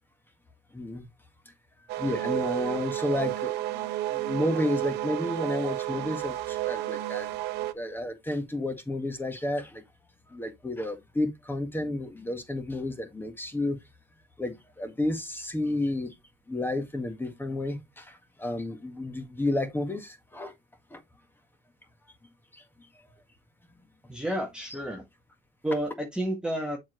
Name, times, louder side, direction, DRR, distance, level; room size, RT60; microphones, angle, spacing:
voice 1, 0.7-1.1 2.0-7.3 7.7-9.8 10.3-13.8 14.4-16.1 16.5-20.5 20.9-21.0 22.5-22.9, left 1 dB, 10° left, 1.7 m, -31 dB
sound 1, 1.9-7.7, right 15 dB, 85° right, 0.7 m, -31 dB
voice 2, 24.1-25.0 25.6-26.8, right 1 dB, 5° right, 1.3 m, -30 dB
7.1 x 5.0 x 3.1 m
cardioid pair, 110°, 17 cm